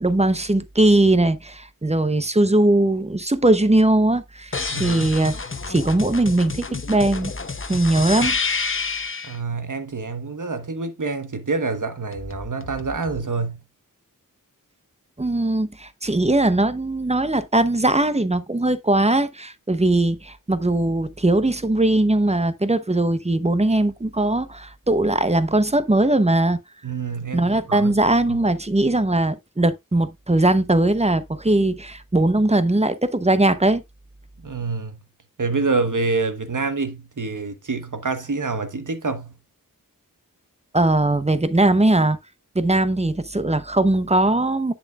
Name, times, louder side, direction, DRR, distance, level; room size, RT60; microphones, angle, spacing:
voice 1, 0.0-5.4 5.7-7.3 7.7-8.4 15.2-26.6 27.3-33.8 40.7-42.2 42.5-44.7, right 2 dB, 20° right, 0.8 m, -20 dB
sound 1, 4.5-9.4 12.1-13.2, left 4 dB, 35° left, 0.8 m, -29 dB
voice 2, 4.7-5.1 9.2-13.6 26.8-27.9 28.3-28.4 34.4-35.0 35.4-39.3, right 3 dB, 60° right, 1.3 m, -27 dB
8.5 x 7.2 x 2.4 m
wide cardioid pair, 60°, 34 cm